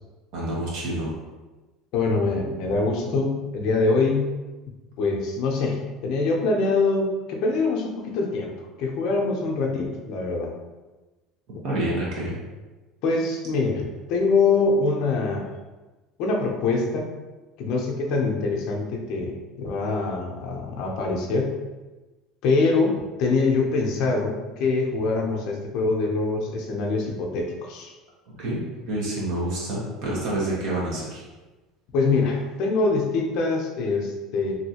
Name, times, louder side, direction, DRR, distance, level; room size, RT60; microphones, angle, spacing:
voice 1, 0.3-1.1 11.6-12.4 28.2-31.2, right 1 dB, 65° right, -5 dB, 1.3 m, -28 dB
voice 2, 1.9-4.3 5.0-10.5 13.0-15.5 16.2-17.1 17.6-21.6 22.4-27.9 31.9-34.5, left 3 dB, 65° left, 1 dB, 0.6 m, -24 dB
3.0 x 2.7 x 2.8 m, 1.2 s
supercardioid pair, 105°, 0 cm